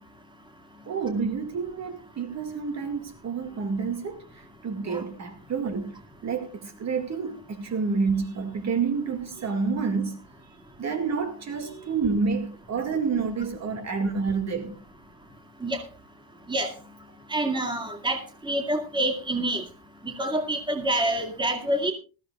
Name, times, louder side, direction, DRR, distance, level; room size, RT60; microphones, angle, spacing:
voice 1, 0.9-10.2 10.8-14.7, right 5 dB, 35° right, 2.1 m, -29 dB
voice 2, 17.3-19.6 20.0-21.9, right 1 dB, 10° right, 2.2 m, -27 dB
19.5 x 15.0 x 2.4 m
cardioid pair, 160°, 46 cm